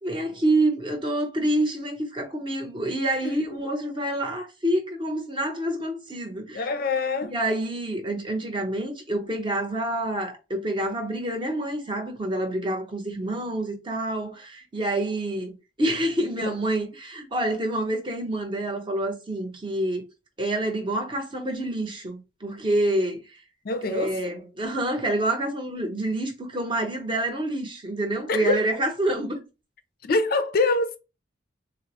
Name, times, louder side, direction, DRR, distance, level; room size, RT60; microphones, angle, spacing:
voice 1, 0.0-6.6 7.2-20.0 20.4-23.4 23.8-29.4, right 1 dB, 25° right, 0.7 m, -27 dB
voice 2, 6.5-7.3 16.4-16.5 23.6-24.2 28.3-28.6 30.0-31.0, left 3 dB, 50° left, 0.4 m, -25 dB
3.9 x 2.0 x 2.9 m
head